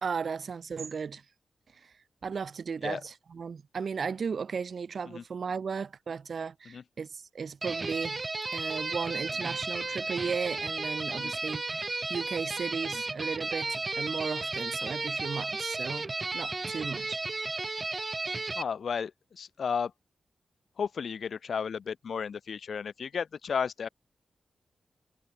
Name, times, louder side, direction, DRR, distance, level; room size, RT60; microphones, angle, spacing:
voice 1, 0.0-1.2 1.8-1.9 2.2-8.2 8.5-16.1 16.3-17.2, right 5 dB, 65° right, 0.8 m, -35 dB
sound 1, 7.6-18.6, right 3 dB, 35° right, 2.7 m, -34 dB
voice 2, 18.6-19.9 20.8-23.9, left 6 dB, 75° left, 0.4 m, -33 dB
cardioid pair, 85°, 0 cm